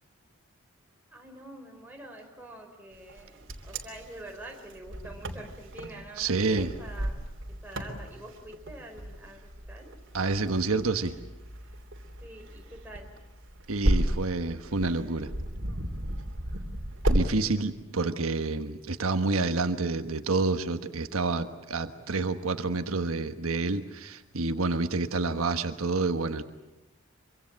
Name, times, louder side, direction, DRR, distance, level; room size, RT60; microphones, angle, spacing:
voice 1, 1.1-7.2 7.6-9.9 12.2-13.1, right 1 dB, 10° right, 1 dB, 4.8 m, -46 dB
Wind, 3.1-17.3, right 1 dB, 60° right, 3.0 m, -33 dB
voice 2, 6.2-6.7 10.1-11.2 13.7-15.3 17.1-26.4, right 3 dB, 85° right, 8 dB, 1.3 m, -28 dB
25.5 x 24.5 x 7.6 m, 1.0 s
head